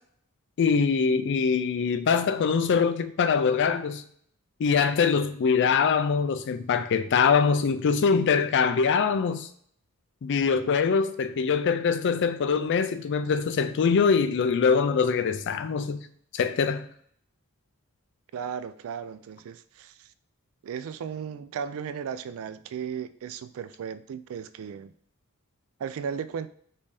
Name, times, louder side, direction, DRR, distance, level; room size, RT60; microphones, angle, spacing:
voice 1, 0.6-4.0 4.6-9.5 10.2-16.1 16.3-16.9, left 5 dB, 55° left, 0.4 m, -23 dB
voice 2, 18.3-20.1 20.6-24.9 25.8-26.5, right 7 dB, 65° right, 0.3 m, -35 dB
5.2 x 2.7 x 3.3 m
head